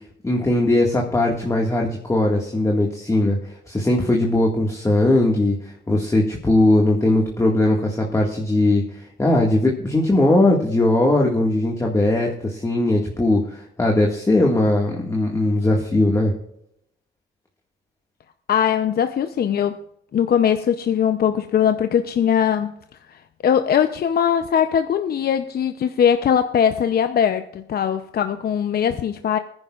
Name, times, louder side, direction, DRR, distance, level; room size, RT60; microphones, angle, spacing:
voice 1, 0.2-3.4 3.7-16.3, left 1 dB, 15° left, -1 dB, 1.8 m, -19 dB
voice 2, 18.5-19.8 20.1-22.7 23.1-29.4, left 8 dB, 50° left, 8 dB, 0.7 m, -20 dB
20.5 x 10.5 x 2.4 m, 0.75 s
cardioid pair, 90°, 20 cm